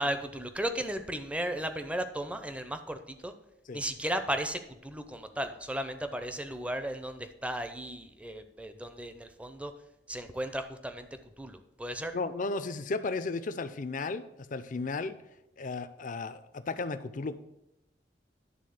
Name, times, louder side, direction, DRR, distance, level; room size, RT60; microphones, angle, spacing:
voice 1, 0.0-3.3 3.7-9.7 10.1-11.1 11.4-12.1, right 1 dB, 5° right, 8 dB, 0.6 m, -35 dB
voice 2, 12.1-14.3 14.5-15.2 15.6-17.3, left 3 dB, 50° left, 12 dB, 0.5 m, -34 dB
10.5 x 3.6 x 6.5 m, 0.86 s
head